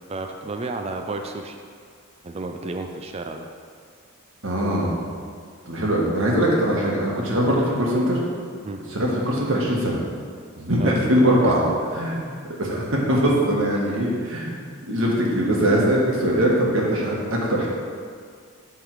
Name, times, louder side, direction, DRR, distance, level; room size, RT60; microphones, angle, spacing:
voice 1, 0.1-1.6 2.2-3.5 8.6-8.8 10.8-11.0 11.4-11.5 13.7-14.0, right 2 dB, 30° right, 5 dB, 0.4 m, -32 dB
voice 2, 4.4-5.0 5.7-8.2 8.9-10.0 10.6-11.6 11.9-12.1 12.6-14.5 14.9-17.7, equal, 60° right, -3 dB, 1.6 m, -21 dB
11.0 x 3.8 x 4.8 m, 2.1 s
head